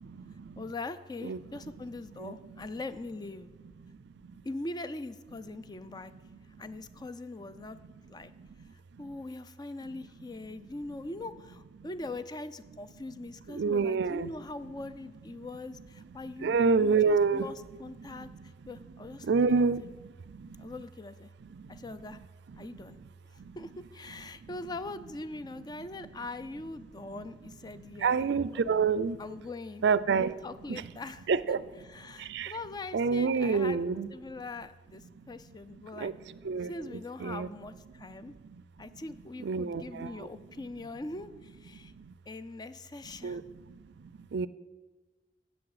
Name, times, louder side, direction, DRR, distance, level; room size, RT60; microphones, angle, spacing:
voice 1, 0.6-3.5 4.4-6.1 6.6-7.8 8.1-8.3 9.0-19.7 20.6-21.3 21.7-22.2 22.6-23.0 23.3-28.6 29.2-29.8 30.1-31.6 31.8-33.8 34.1-36.1 36.6-38.3 38.8-41.9 42.3-43.4, left 2 dB, 25° left, 13 dB, 0.4 m, -42 dB
voice 2, 13.5-14.3 16.4-17.5 19.3-19.8 28.0-29.2 29.8-30.3 30.7-30.8 31.3-31.6 32.3-32.5 32.9-34.1 36.0-36.1 36.4-36.7 37.2-37.5 39.4-40.1 43.2-43.4 44.3-44.5, right 5 dB, 65° right, 17 dB, 0.4 m, -26 dB
12.0 x 8.1 x 4.8 m, 1.3 s
head